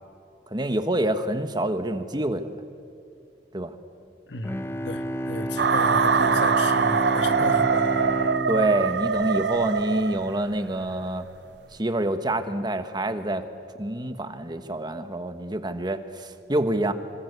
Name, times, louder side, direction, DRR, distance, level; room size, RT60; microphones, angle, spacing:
voice 1, 0.5-2.5 3.5-3.7 8.5-11.2 11.7-13.4 13.8-16.9, right 1 dB, 25° right, 9 dB, 1.4 m, -26 dB
voice 2, 4.3-8.0, left 2 dB, 85° left, 9 dB, 1.5 m, -34 dB
Bowed string instrument, 4.4-10.0, right 1 dB, 15° left, 1.0 m, -30 dB
sound 1, 5.6-10.5, right 5 dB, 70° right, 0.6 m, -23 dB
26.0 x 25.5 x 8.2 m, 2.4 s
head